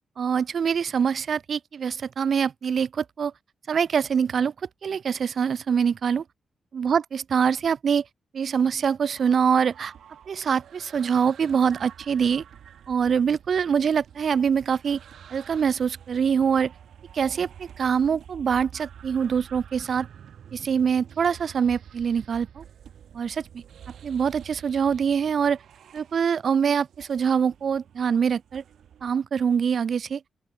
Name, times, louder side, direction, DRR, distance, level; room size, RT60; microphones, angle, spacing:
voice 1, 0.2-3.3 3.7-4.5 4.8-6.2 6.7-8.0 8.3-9.9 10.3-12.4 12.9-15.0 15.3-16.7 17.1-20.1 20.5-22.6 23.1-23.5 24.0-25.6 25.9-28.6 29.0-30.2, right 7 dB, 60° right, 0.3 m, -24 dB
sound 1, 9.1-29.1, right 9 dB, 80° right, 6.9 m, -48 dB
open air
cardioid pair, 80°, 0 cm